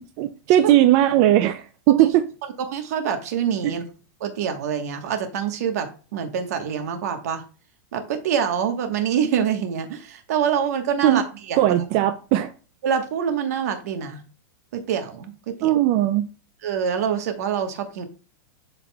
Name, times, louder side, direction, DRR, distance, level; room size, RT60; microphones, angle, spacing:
voice 1, 0.2-2.3 3.6-3.7 11.0-11.2 11.6-12.5 15.6-16.3, right 13 dB, 30° right, 0.3 m, -18 dB
voice 2, 2.6-3.8 4.2-7.4 7.9-11.8 12.8-14.2 14.7-15.7 16.6-18.1, right 8 dB, 55° right, 1.3 m, -26 dB
12.0 x 4.0 x 2.3 m
supercardioid pair, 175°, 10 cm